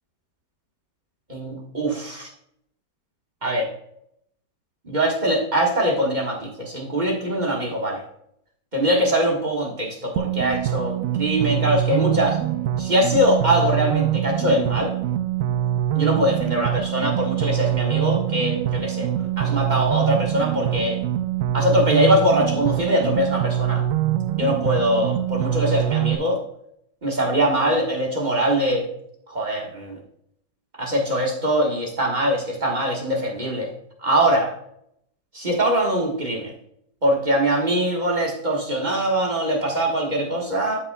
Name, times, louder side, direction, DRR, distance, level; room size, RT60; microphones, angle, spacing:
voice 1, 1.3-2.3 3.4-3.7 4.8-8.0 8.7-12.4 12.8-14.9 15.9-21.0 21.5-23.8 24.4-26.4 27.0-28.9 29.3-30.0 30.8-33.7 34.0-34.5 35.3-36.5 37.0-40.8, equal, 25° right, -1 dB, 1.5 m, -22 dB
sound 1, 10.2-26.2, right 12 dB, 85° right, 0.7 m, -24 dB
12.5 x 5.4 x 2.3 m, 0.72 s
omnidirectional pair, 1.9 m